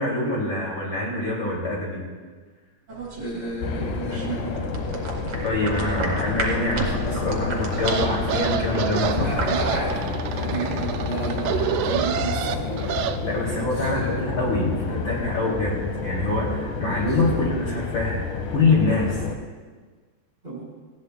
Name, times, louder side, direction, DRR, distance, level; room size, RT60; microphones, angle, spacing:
voice 1, 0.0-2.0 5.4-9.3 13.2-18.2 18.5-19.2, left 2 dB, 40° left, -5 dB, 3.1 m, -25 dB
sound 1, 2.9-10.0, right 3 dB, 50° right, 2.7 m, -33 dB
voice 2, 3.1-4.7 9.1-13.1 13.5-14.4 16.8-17.7 20.4-20.6, right 2 dB, 20° right, -5 dB, 4.0 m, -33 dB
sound 2, 3.6-19.4, left 4 dB, 85° left, 2.5 m, -29 dB
sound 3, 7.7-13.2, right 9 dB, 75° right, 1.5 m, -28 dB
19.5 x 16.0 x 2.2 m, 1.4 s
omnidirectional pair, 3.5 m